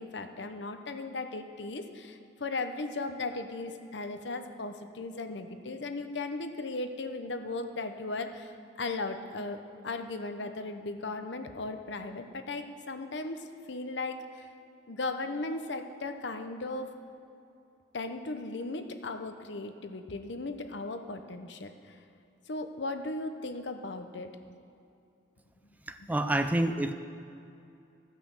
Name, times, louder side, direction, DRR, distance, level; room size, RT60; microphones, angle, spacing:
voice 1, 0.0-14.5 14.9-16.9 17.9-22.0 22.5-24.3, left 3 dB, 75° left, 7 dB, 0.8 m, -37 dB
voice 2, 25.9-26.9, right 1 dB, 10° right, 8 dB, 0.4 m, -28 dB
15.0 x 5.9 x 7.1 m, 2.7 s
head